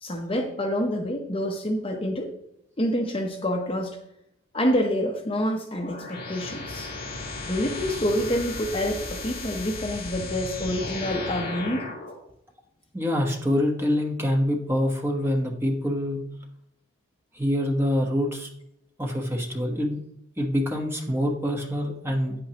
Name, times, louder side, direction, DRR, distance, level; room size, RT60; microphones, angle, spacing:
voice 1, 0.0-2.3 2.8-4.0 4.5-6.9 7.5-11.9, equal, 25° left, 3 dB, 0.8 m, -27 dB
sound 1, 5.7-12.1, left 3 dB, 40° left, 2.8 m, -35 dB
voice 2, 12.9-16.2 17.3-18.5 19.0-20.0 20.4-22.3, equal, 10° right, 1 dB, 1.1 m, -25 dB
9.4 x 8.7 x 2.9 m, 0.77 s
head